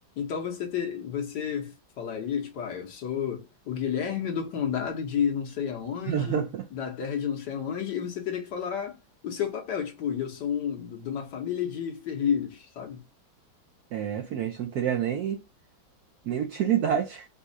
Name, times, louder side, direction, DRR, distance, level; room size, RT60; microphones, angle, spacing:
voice 1, 0.2-6.4 6.7-9.0 9.2-13.0, left 8 dB, 65° left, 1.4 m, -31 dB
voice 2, 6.1-6.6 13.9-15.4 16.3-17.3, right 9 dB, 70° right, 0.9 m, -27 dB
4.2 x 2.3 x 2.6 m
omnidirectional pair, 2.1 m